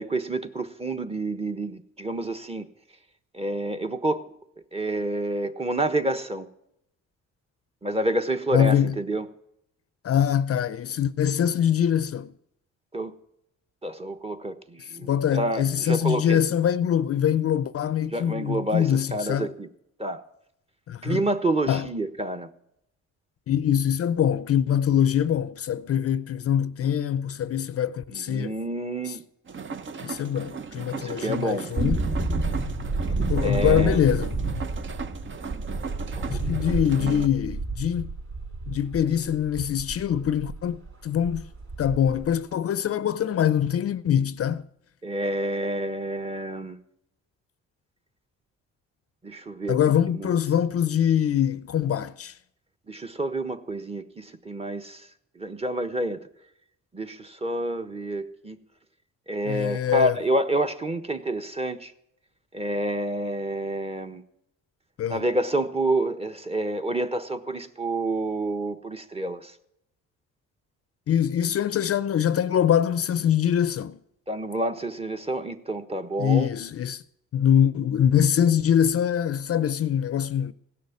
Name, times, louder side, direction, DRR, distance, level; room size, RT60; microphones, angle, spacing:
voice 1, 0.0-2.7 3.3-4.3 4.7-6.5 7.8-9.3 12.9-13.1 13.8-16.5 18.1-19.7 20.0-20.2 21.0-22.5 28.1-29.2 30.9-31.7 33.4-34.0 36.2-37.3 45.0-46.8 49.2-49.8 50.1-50.4 52.9-55.1 55.3-56.2 56.9-58.6 59.3-61.9 62.5-64.2 65.1-69.5 74.3-76.5, right 1 dB, 20° right, 1.2 m, -28 dB
voice 2, 8.5-9.0 10.0-12.3 15.0-19.5 20.9-21.2 21.7-21.9 23.5-28.6 29.1-29.2 30.0-32.0 33.3-34.3 36.3-38.1 38.7-41.4 41.8-44.7 49.7-52.3 59.5-60.1 65.0-65.3 71.1-74.0 76.2-77.0 77.3-80.5, left 9 dB, 50° left, 0.6 m, -23 dB
sound 1, 29.5-37.3, right 5 dB, 40° right, 0.9 m, -37 dB
sound 2, 31.8-40.6 40.9-41.0 41.2-42.3 42.5-42.6, right 3 dB, 60° right, 4.4 m, -29 dB
16.5 x 6.5 x 9.4 m
cardioid pair, 90°, 30 cm